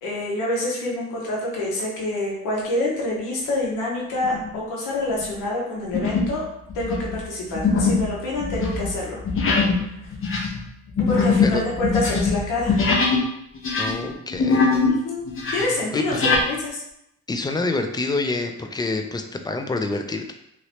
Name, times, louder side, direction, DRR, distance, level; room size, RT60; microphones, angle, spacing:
voice 1, 0.0-6.4 6.7-9.2 9.9-10.1 11.1-12.8 14.9-15.2 15.5-16.8, left 2 dB, 90° left, -3 dB, 0.9 m, -27 dB
sound 1, 4.2-4.6 5.1-5.3 5.9-6.4 6.7-13.3 13.5-15.0 15.3-16.5, left 4 dB, 45° left, 0.8 m, -22 dB
voice 2, 13.8-14.7 15.9-16.2 17.3-20.3, left 3 dB, 15° left, 6 dB, 0.3 m, -27 dB
3.0 x 2.9 x 2.8 m, 0.79 s
cardioid pair, 90°, 30 cm